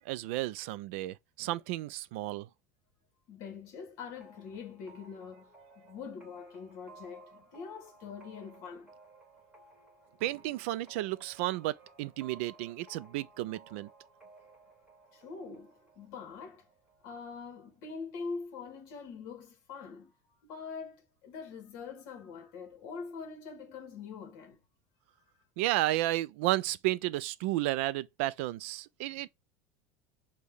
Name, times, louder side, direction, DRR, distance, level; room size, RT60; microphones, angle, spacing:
voice 1, 0.1-2.5 10.2-13.9 25.6-29.3, right 16 dB, 70° right, 0.3 m, -32 dB
voice 2, 3.3-8.9 15.1-16.7 17.0-20.1 20.4-24.6, left 5 dB, 50° left, 1.2 m, -44 dB
sound 1, 4.2-17.7, right 3 dB, 5° right, 1.4 m, -58 dB
6.3 x 2.2 x 3.4 m
cardioid pair, 175°, 7 cm